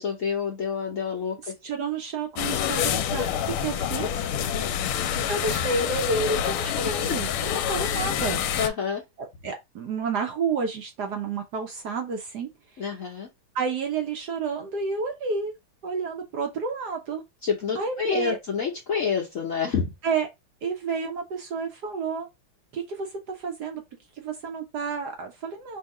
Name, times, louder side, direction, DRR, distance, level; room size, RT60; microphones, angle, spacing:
voice 1, 0.0-1.4 4.5-4.8 7.1-7.2 8.5-9.0 12.8-13.3 17.4-19.9, left 6 dB, 55° left, 0.9 m, -28 dB
voice 2, 1.6-4.2 5.3-8.4 9.4-12.5 13.5-15.5 15.8-17.2 17.8-18.4 20.0-20.3 20.6-22.3 22.7-23.8 24.2-25.8, right 4 dB, 65° right, 1.1 m, -30 dB
sound 1, 2.4-8.7, left 9 dB, 80° left, 1.4 m, -27 dB
3.5 x 2.8 x 4.7 m
omnidirectional pair, 2.3 m